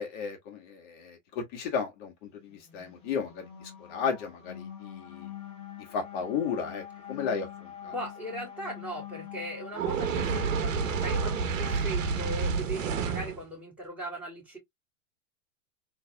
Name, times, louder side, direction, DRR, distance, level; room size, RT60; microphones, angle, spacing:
voice 1, 0.0-3.5 3.9-5.3 5.9-7.9, left 6 dB, 50° left, 1.7 m, -34 dB
sound 1, 2.7-13.2, left 10 dB, 15° left, 1.7 m, -45 dB
voice 2, 7.8-14.6, right 1 dB, 5° right, 2.9 m, -39 dB
Fire, 9.7-13.4, right 5 dB, 80° right, 1.1 m, -29 dB
4.1 x 3.4 x 2.2 m
hypercardioid pair, 120°, 39 cm